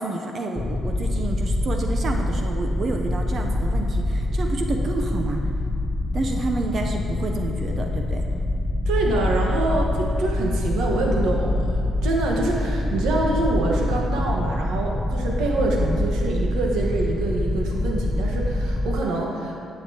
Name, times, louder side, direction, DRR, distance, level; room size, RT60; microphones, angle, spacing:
voice 1, 0.0-5.4 6.1-8.2, right 2 dB, 50° right, 3 dB, 0.6 m, -29 dB
sound 1, 0.6-19.0, left 1 dB, 25° left, 0.4 m, -25 dB
voice 2, 8.8-19.6, right 2 dB, 90° right, -1 dB, 1.3 m, -25 dB
11.5 x 7.8 x 2.9 m, 2.5 s
cardioid pair, 90°, 0 cm